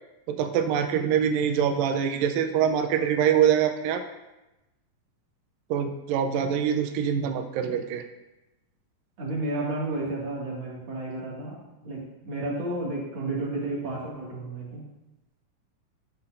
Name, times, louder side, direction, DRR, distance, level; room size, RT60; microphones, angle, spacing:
voice 1, 0.3-4.0 5.7-8.0, right 8 dB, 85° right, 5 dB, 2.2 m, -24 dB
voice 2, 9.2-14.8, right 2 dB, 40° right, -6 dB, 2.4 m, -32 dB
14.5 x 5.8 x 2.6 m, 0.99 s
omnidirectional pair, 4.1 m